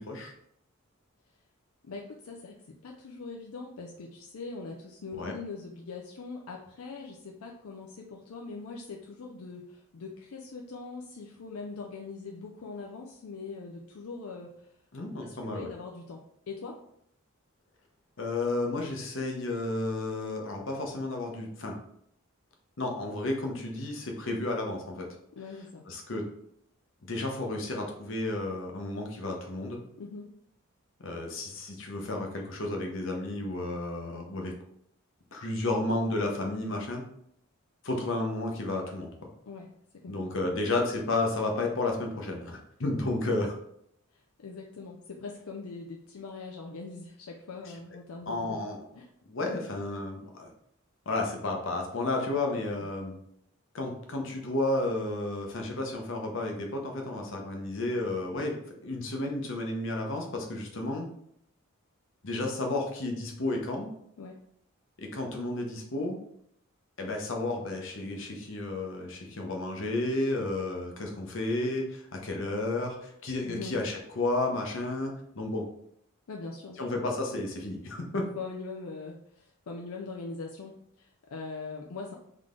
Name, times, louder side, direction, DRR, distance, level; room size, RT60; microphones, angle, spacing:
voice 1, 1.8-2.5 2.8-14.5 15.2-16.2 16.5-16.7 25.4-25.8 30.0-30.3 39.5-39.7 40.0-40.1 44.4-48.6 49.0-49.1 52.8-52.9 64.2-64.3 73.5-73.8 76.3-77.1 78.4-80.7 81.0-82.2, left 4 dB, 80° left, 0 dB, 0.5 m, -41 dB
voice 2, 14.9-15.7 18.2-21.7 22.8-25.1 25.9-26.2 27.0-29.8 31.0-34.5 35.3-37.0 37.8-39.1 40.1-43.5 48.3-48.8 49.3-50.5 51.1-53.1 53.7-58.5 58.8-61.1 62.2-63.9 65.0-66.2 67.0-75.7 76.8-78.3, left 2 dB, 60° left, 2 dB, 0.9 m, -32 dB
3.7 x 3.3 x 3.7 m, 0.71 s
head